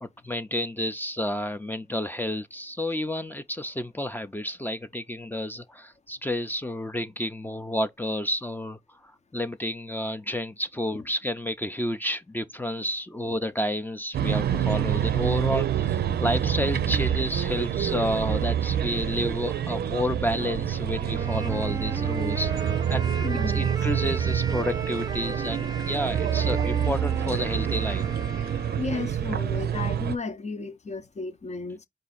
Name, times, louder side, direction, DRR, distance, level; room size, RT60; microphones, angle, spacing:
voice 1, 0.0-8.8 9.3-22.5 22.9-23.3 23.5-28.1, left 1 dB, 10° left, 0.5 m, -30 dB
sound 1, 14.1-30.2, right 9 dB, 85° right, 0.5 m, -27 dB
Wind instrument woodwind instrument, 21.0-29.0, right 2 dB, 25° right, 0.7 m, -36 dB
voice 2, 23.2-23.7 28.8-31.9, left 4 dB, 45° left, 0.7 m, -34 dB
4.6 x 2.5 x 4.0 m
cardioid pair, 65°, 16 cm